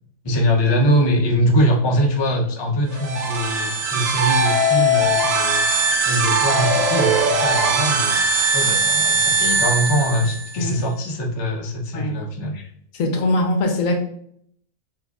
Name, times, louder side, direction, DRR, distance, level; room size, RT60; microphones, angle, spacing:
voice 1, 0.2-5.7 6.1-8.2 8.5-12.6, equal, 40° left, 0 dB, 0.4 m, -22 dB
sound 1, 2.9-10.6, right 2 dB, 75° right, 1.0 m, -20 dB
voice 2, 13.0-13.9, left 1 dB, 75° left, 2 dB, 1.1 m, -21 dB
6.4 x 2.5 x 2.3 m, 0.67 s
omnidirectional pair, 1.4 m